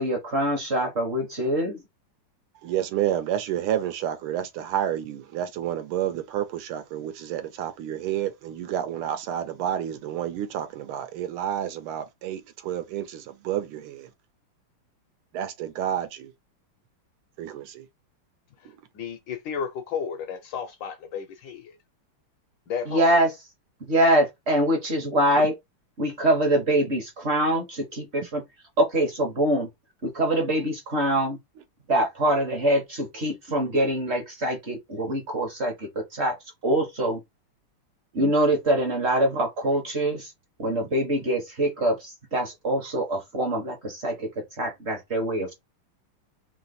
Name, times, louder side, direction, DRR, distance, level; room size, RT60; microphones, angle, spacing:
voice 1, 0.0-1.8 22.9-23.3 23.8-25.5 26.0-28.4 28.8-29.7 30.0-31.4 31.9-36.3 36.6-37.2 38.1-40.3 40.6-44.3 44.6-45.5, right 1 dB, 40° right, 1.0 m, -24 dB
voice 2, 2.6-14.1 15.3-16.3 17.4-17.9 18.7-18.8 38.1-38.3, right 11 dB, 80° right, 1.6 m, -30 dB
voice 3, 18.6-21.8 22.7-23.2, left 7 dB, 70° left, 1.2 m, -33 dB
3.8 x 2.8 x 4.1 m
omnidirectional pair, 2.4 m